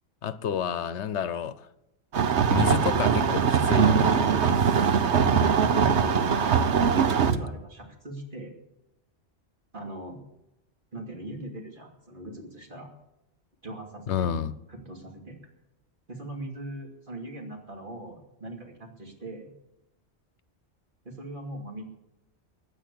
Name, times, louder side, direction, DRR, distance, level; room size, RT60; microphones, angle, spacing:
voice 1, 0.2-1.7 2.5-4.2 14.1-14.5, left 8 dB, 75° left, 15 dB, 1.0 m, -29 dB
sound 1, 2.1-7.4, right 6 dB, 70° right, 1.2 m, -22 dB
voice 2, 5.2-6.7 7.2-8.6 9.7-10.2 10.9-12.9 13.6-14.3 14.7-15.4 16.1-19.5 21.0-21.8, right 1 dB, 45° right, 1 dB, 2.8 m, -40 dB
15.0 x 9.6 x 8.5 m, 0.89 s
omnidirectional pair, 1.2 m